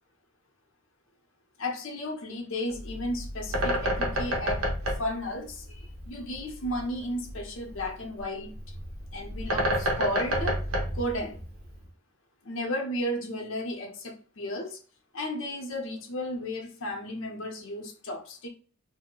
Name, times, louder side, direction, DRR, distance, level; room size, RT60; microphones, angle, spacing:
voice 1, 1.6-4.7 5.0-8.5 9.1-10.6 10.9-11.4 12.4-14.8 15.1-18.5, left 1 dB, 60° left, 0.7 m, -34 dB
Bird, 2.7-11.9, equal, 90° right, 0.9 m, -31 dB
2.7 x 2.1 x 3.7 m
head